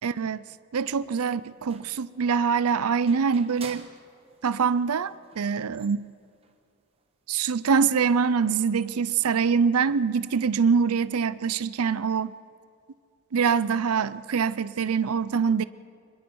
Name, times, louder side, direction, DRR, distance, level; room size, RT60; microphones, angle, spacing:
voice 1, 0.0-0.4 0.7-3.9 4.4-6.1 7.3-12.3 13.3-15.6, right 6 dB, 80° right, 16 dB, 0.5 m, -24 dB
sound 1, 0.9-4.5 4.8-4.9 5.1-6.6 7.0-7.1 7.3-10.4, right 4 dB, 25° right, 1.2 m, -51 dB
26.0 x 21.5 x 4.7 m, 2.3 s
head